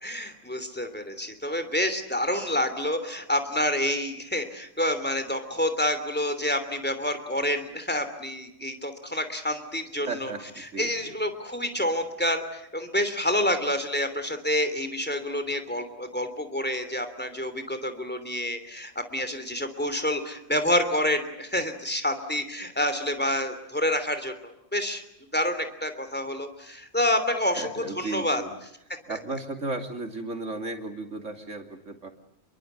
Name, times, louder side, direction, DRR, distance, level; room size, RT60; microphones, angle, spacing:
voice 1, 0.0-10.3 10.8-25.0 25.3-28.4 29.1-29.2, left 1 dB, 10° left, 9 dB, 3.0 m, -28 dB
voice 2, 10.1-10.9 27.5-28.5 29.1-32.1, right 3 dB, 80° right, 5 dB, 3.2 m, -35 dB
27.5 x 23.0 x 8.2 m, 0.77 s
omnidirectional pair, 1.3 m